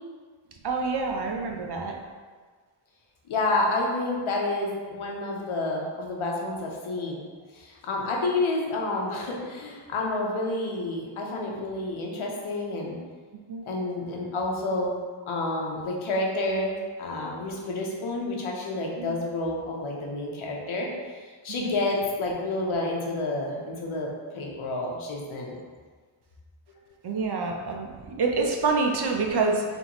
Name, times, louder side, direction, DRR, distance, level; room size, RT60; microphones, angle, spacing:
voice 1, 0.6-2.0 13.5-13.7 19.0-19.2 21.6-21.7 27.0-29.6, right 4 dB, 55° right, 2 dB, 0.6 m, -27 dB
voice 2, 3.3-7.2 7.5-13.0 13.7-14.9 15.3-25.6, left 2 dB, 80° left, -1 dB, 0.9 m, -29 dB
3.9 x 3.5 x 2.9 m, 1.5 s
wide cardioid pair, 135°, 48 cm